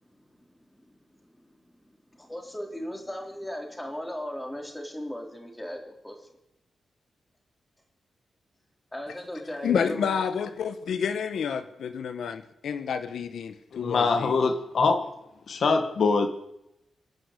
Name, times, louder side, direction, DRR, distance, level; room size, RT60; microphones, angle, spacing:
voice 1, 2.2-6.3 8.9-10.1, equal, 10° left, 4.1 m, -37 dB
voice 2, 9.6-14.3, left 7 dB, 75° left, 1.3 m, -29 dB
voice 3, 13.7-15.1 15.5-16.3, left 4 dB, 55° left, 1.9 m, -23 dB
27.0 x 11.5 x 8.4 m
wide cardioid pair, 160°, 0 cm